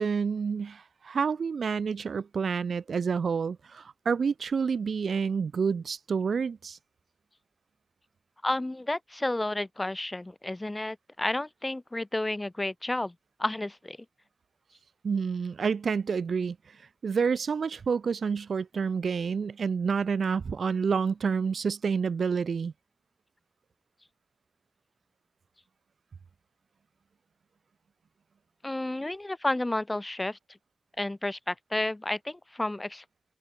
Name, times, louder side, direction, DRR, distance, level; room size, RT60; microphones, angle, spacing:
voice 1, 0.0-6.8 15.0-16.8 17.0-22.7, right 5 dB, 80° right, 1.2 m, -28 dB
voice 2, 8.4-13.1 13.4-14.0 28.6-30.4 31.0-33.0, left 1 dB, 20° left, 6.5 m, -31 dB
open air
wide cardioid pair, 120°, 0 cm